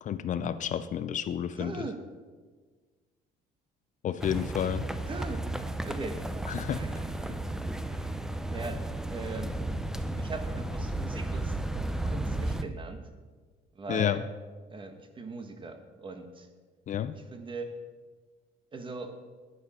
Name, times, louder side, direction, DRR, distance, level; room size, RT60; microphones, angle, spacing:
voice 1, 0.0-1.7 4.0-4.9 6.5-6.8 13.9-14.2 16.9-17.2, left 9 dB, 50° left, 12 dB, 0.5 m, -30 dB
voice 2, 1.5-2.0 5.0-5.5 5.8-6.3 6.7-7.6 7.9-9.6 10.1-13.1 13.7-14.2 14.7-16.5 17.1-17.8 18.7-19.2, right 3 dB, 30° right, 7 dB, 1.3 m, -40 dB
sound 1, 4.2-12.6, right 1 dB, 5° right, 0.6 m, -33 dB
12.5 x 10.0 x 4.3 m, 1.4 s
cardioid pair, 110°, 17 cm